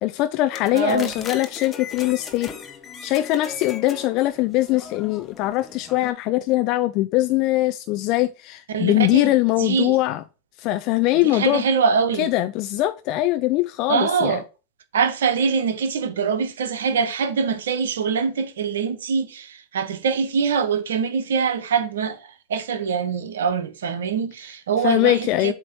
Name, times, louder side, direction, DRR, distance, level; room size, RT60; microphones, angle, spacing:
voice 1, 0.0-2.5 3.0-10.2 10.6-11.6 12.2-14.4 24.8-25.5, left 16 dB, 50° left, 0.4 m, -22 dB
sound 1, 0.5-6.1, left 6 dB, 30° left, 1.0 m, -37 dB
voice 2, 0.7-1.1 8.7-9.3 9.6-10.0 11.3-12.3 13.9-14.4 14.9-22.2 22.5-25.5, right 6 dB, 75° right, 1.0 m, -23 dB
7.9 x 3.0 x 4.8 m
hypercardioid pair, 95°, 0 cm